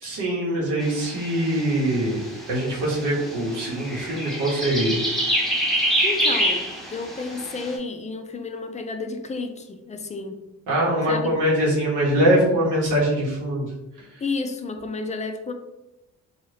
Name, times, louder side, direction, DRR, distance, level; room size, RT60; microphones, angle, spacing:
voice 1, 0.0-2.2 2.5-5.0 10.7-13.7, right 1 dB, 90° right, -4 dB, 1.0 m, -23 dB
sound 1, 0.8-7.7, equal, ahead, 0.7 m, -27 dB
voice 2, 6.0-10.4 11.1-11.4 14.2-15.5, left 3 dB, 25° left, 6 dB, 0.3 m, -31 dB
2.7 x 2.3 x 3.2 m, 0.95 s
cardioid pair, 90°, 30 cm